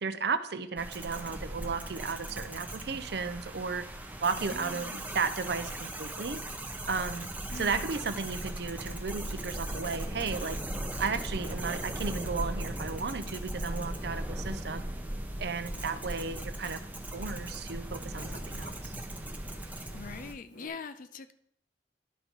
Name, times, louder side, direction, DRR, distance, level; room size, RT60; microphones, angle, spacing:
voice 1, 0.0-3.8 4.2-6.4 6.9-7.3 7.5-10.6 11.0-14.8 15.4-16.8 17.1-19.0, right 5 dB, 60° right, 11 dB, 0.6 m, -34 dB
sound 1, 0.8-20.3, right 1 dB, 10° right, 0.6 m, -38 dB
Wind, 1.5-4.3 4.8-6.1 6.7-20.7, left 1 dB, 85° left, 1.7 m, -56 dB
voice 2, 4.4-5.1 7.5-7.9 19.9-21.3, left 4 dB, 50° left, 11 dB, 0.5 m, -43 dB
11.5 x 3.9 x 4.5 m, 0.73 s
head